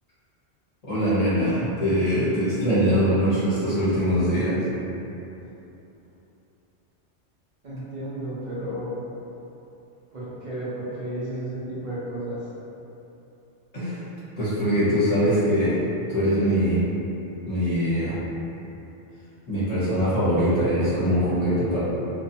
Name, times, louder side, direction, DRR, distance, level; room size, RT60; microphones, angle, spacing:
voice 1, 0.8-4.6 13.7-14.0 14.4-15.8 16.1-16.8 17.5-18.2 19.5-21.8, equal, 40° left, -12 dB, 0.9 m, -22 dB
voice 2, 7.6-9.0 10.1-12.4, right 1 dB, 50° right, -10 dB, 0.7 m, -32 dB
2.5 x 2.2 x 2.6 m, 2.9 s
omnidirectional pair, 1.1 m